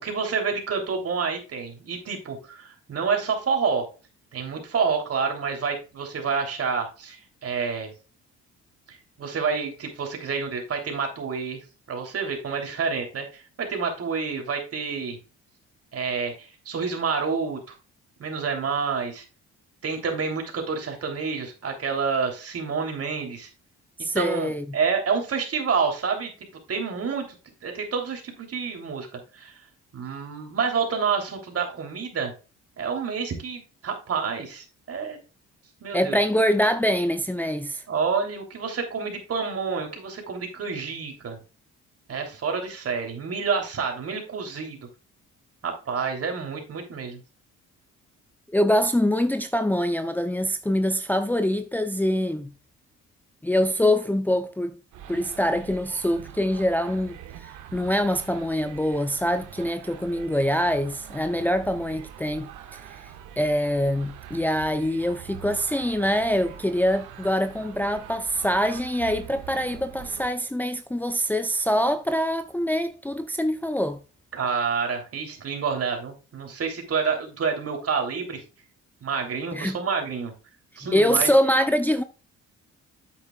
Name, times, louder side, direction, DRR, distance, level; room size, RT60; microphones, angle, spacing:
voice 1, 0.0-3.9 4.3-7.9 8.9-15.2 15.9-17.7 18.2-19.2 19.8-23.5 24.1-26.3 26.7-27.3 27.6-29.1 29.3-29.6 29.9-32.3 32.8-35.2 35.8-36.2 37.9-41.4 42.1-44.8 45.6-47.2 74.3-78.4 79.0-80.3 80.8-81.3, right 5 dB, 50° right, 3.3 m, -28 dB
voice 2, 24.0-24.6 35.9-37.8 48.5-52.5 53.4-54.8 55.1-62.8 63.4-74.0 79.5-79.8 80.9-82.0, equal, 5° left, 0.6 m, -24 dB
sound 1, 54.9-70.3, right 11 dB, 85° right, 1.5 m, -44 dB
9.1 x 8.1 x 2.4 m
cardioid pair, 85°, 30 cm